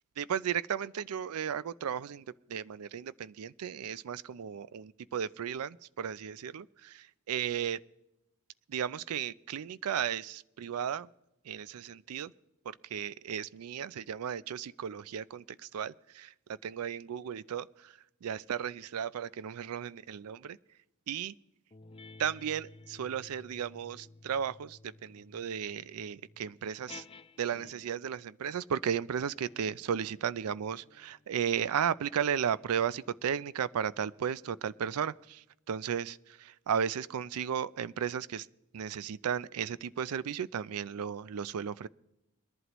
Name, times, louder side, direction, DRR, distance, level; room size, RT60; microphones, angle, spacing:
voice 1, 0.2-2.2 2.5-7.8 8.7-11.1 11.5-12.3 12.7-15.4 15.7-16.3 16.6-17.9 18.2-20.6 21.1-21.3 22.2-27.0 27.4-38.5 38.7-41.9, right 8 dB, 75° right, 0.4 m, -35 dB
sound 1, 21.7-28.1 28.9-33.8, left 3 dB, 25° left, 0.4 m, -55 dB
22.0 x 11.0 x 3.0 m
head